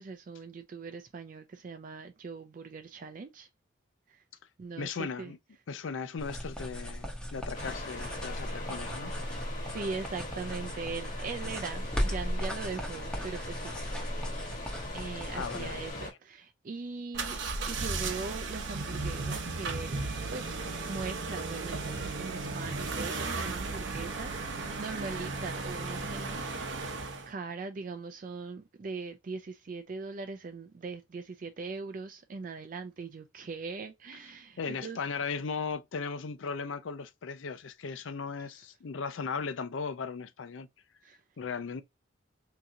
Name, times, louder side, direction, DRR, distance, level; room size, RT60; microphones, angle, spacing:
voice 1, 0.0-3.5 4.1-4.2 4.6-5.3 9.6-13.8 14.9-17.4 17.7-26.5 27.3-35.0 38.4-38.5 41.0-41.2, right 4 dB, 40° right, 0.3 m, -40 dB
voice 2, 4.8-5.4 5.7-9.1 15.3-15.8 34.6-40.7 41.4-41.8, left 5 dB, 75° left, 0.5 m, -37 dB
sound 1, 6.2-15.9, equal, 5° left, 0.7 m, -37 dB
sound 2, 7.5-16.1, left 2 dB, 40° left, 1.2 m, -42 dB
sound 3, 17.1-27.3, right 3 dB, 65° right, 0.8 m, -35 dB
3.6 x 2.9 x 2.6 m
head